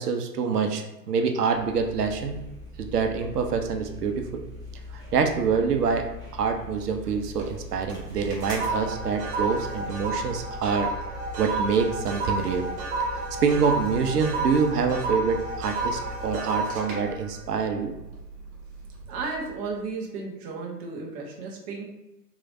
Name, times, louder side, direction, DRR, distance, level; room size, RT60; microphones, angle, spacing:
voice 1, 0.0-2.4 2.8-4.4 4.9-6.1 6.3-10.9 11.4-12.7 13.4-17.9, right 5 dB, 75° right, 5 dB, 0.7 m, -26 dB
sound 1, 1.5-16.3, left 3 dB, 10° left, 0.9 m, -42 dB
sound 2, 7.1-7.6 7.9-18.5 18.9-19.2, right 3 dB, 45° right, 1.4 m, -31 dB
voice 2, 19.1-21.9, right 4 dB, 25° right, -1 dB, 0.6 m, -34 dB
3.7 x 3.2 x 2.5 m, 0.96 s
hypercardioid pair, 120°, 48 cm